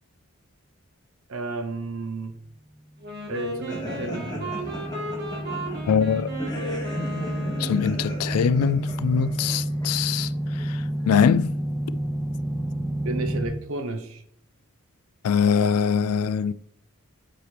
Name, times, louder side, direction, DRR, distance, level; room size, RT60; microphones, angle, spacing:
voice 1, 1.3-2.4 3.3-4.5 13.0-14.2, right 3 dB, 65° right, 0.8 m, -32 dB
Wind instrument woodwind instrument, 3.0-8.2, right 1 dB, 50° right, 1.5 m, -35 dB
sound 1, 3.7-11.3, equal, 20° left, 1.2 m, -37 dB
sound 2, 3.8-13.5, right 1 dB, ahead, 0.6 m, -30 dB
voice 2, 5.9-6.3 7.6-10.3 10.7-10.8 11.1-11.5 15.2-16.5, left 7 dB, 85° left, 0.3 m, -22 dB
7.9 x 4.3 x 3.3 m
head